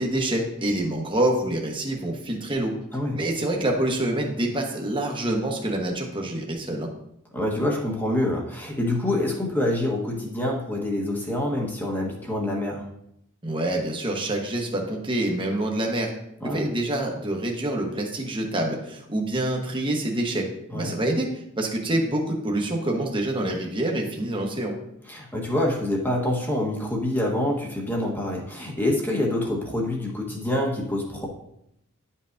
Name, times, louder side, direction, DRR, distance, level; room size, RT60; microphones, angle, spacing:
voice 1, 0.0-2.8 3.1-6.9 13.4-16.1 16.4-20.5 20.7-24.8, right 1 dB, 25° right, 0 dB, 1.1 m, -26 dB
voice 2, 7.3-12.8 16.4-16.7 20.7-20.9 25.1-31.3, left 1 dB, 10° left, -1 dB, 1.3 m, -26 dB
10.5 x 5.6 x 2.6 m, 0.79 s
head